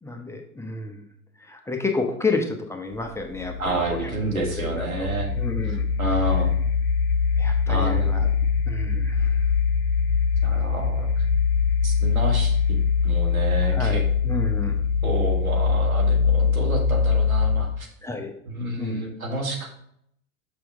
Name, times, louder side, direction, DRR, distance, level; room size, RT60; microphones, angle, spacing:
voice 1, 0.0-1.0 1.4-5.1 5.4-5.8 7.4-8.3 8.7-9.4 13.7-14.8 18.0-18.3 18.8-19.1, left 3 dB, 5° left, 2 dB, 0.8 m, -30 dB
sound 1, 2.9-17.8, left 5 dB, 55° left, 1.1 m, -23 dB
voice 2, 3.6-5.3 6.0-6.5 7.7-8.1 10.4-11.3 11.8-12.8 13.0-14.0 15.0-17.9 18.5-19.7, right 2 dB, 85° right, 0 dB, 1.7 m, -29 dB
6.1 x 6.1 x 3.4 m, 0.71 s
figure-of-eight pair, 90°, 41 cm